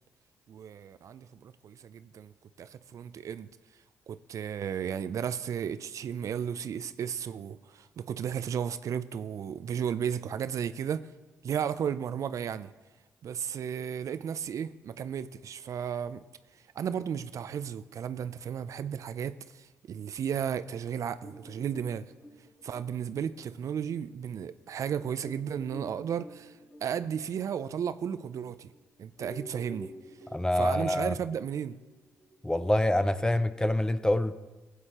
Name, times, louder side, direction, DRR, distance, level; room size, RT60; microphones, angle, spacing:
voice 1, 0.5-2.3 2.6-3.5 4.1-11.1 11.4-12.7 13.2-16.2 16.7-22.1 22.6-26.5 26.8-28.7 29.0-29.9 30.5-31.8, right 8 dB, 60° right, 0.4 m, -34 dB
sound 1, 21.2-24.3 24.7-24.8 25.2-28.8 29.1-33.2, equal, 45° left, 4.0 m, -50 dB
voice 2, 30.3-31.1 32.4-34.4, left 1 dB, 10° left, 0.6 m, -26 dB
15.5 x 8.3 x 3.0 m
supercardioid pair, 60°, 6 cm